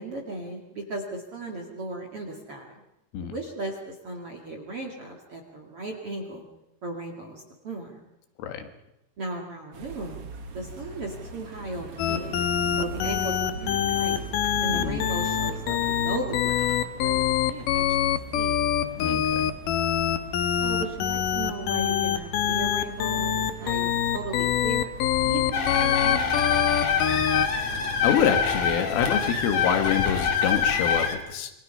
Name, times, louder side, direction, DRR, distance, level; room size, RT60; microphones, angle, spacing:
voice 1, 0.0-2.8 3.2-6.4 6.8-8.0 9.2-12.4 12.8-14.2 14.6-18.7 20.6-24.9 25.2-26.4, right 2 dB, 40° right, 2 dB, 2.2 m, -36 dB
sound 1, 9.7-29.6, right 3 dB, 75° right, 1.4 m, -42 dB
sound 2, 12.0-27.5, left 9 dB, 70° left, 2.1 m, -25 dB
voice 2, 19.0-19.5 28.0-31.5, left 8 dB, 85° left, 7 dB, 4.3 m, -26 dB
sound 3, 25.5-31.2, left 6 dB, 45° left, 2.6 m, -25 dB
27.0 x 23.5 x 5.6 m, 0.91 s
omnidirectional pair, 5.6 m